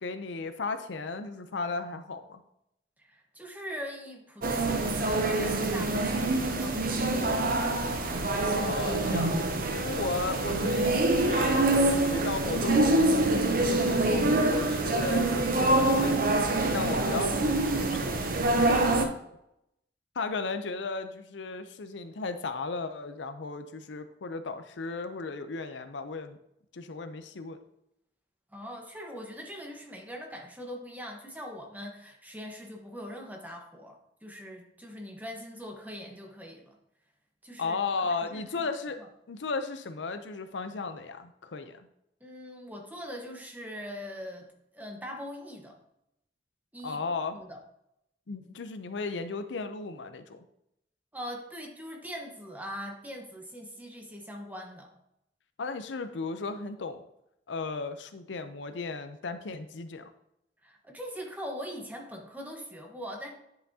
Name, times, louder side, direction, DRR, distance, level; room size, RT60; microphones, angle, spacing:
voice 1, 0.0-2.4 8.5-11.6 11.9-13.1 13.6-16.3 16.7-18.1 18.7-18.8 20.2-26.4 26.7-27.6 37.6-39.0 39.3-41.9 46.8-47.4 48.3-50.4 55.6-57.0 57.5-60.1, left 4 dB, 80° left, 9 dB, 0.6 m, -35 dB
voice 2, 3.0-7.5 18.5-19.1 28.5-36.8 37.4-37.8 38.2-38.7 39.0-39.1 42.2-45.8 46.7-47.0 47.3-47.6 51.1-54.9 60.6-63.3, equal, 10° right, 2 dB, 1.1 m, -42 dB
sound 1, 4.4-19.1, right 2 dB, 50° right, 0.7 m, -25 dB
10.0 x 5.7 x 2.8 m, 0.81 s
head